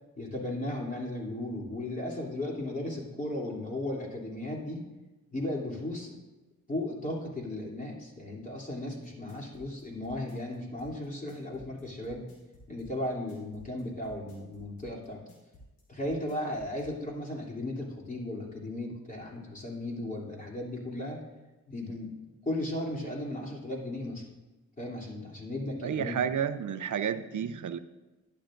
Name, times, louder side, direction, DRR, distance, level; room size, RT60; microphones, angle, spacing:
voice 1, 0.2-4.8 5.3-6.2 6.7-12.3 12.7-15.2 15.9-21.2 21.7-22.1 22.4-24.3 24.8-26.2, left 1 dB, 20° left, -3 dB, 3.0 m, -36 dB
sound 1, 9.0-16.9, equal, 85° left, 1.8 m, -53 dB
voice 2, 25.8-27.8, right 8 dB, 60° right, 12 dB, 0.7 m, -31 dB
11.5 x 10.5 x 2.6 m, 1.1 s
supercardioid pair, 45°, 35 cm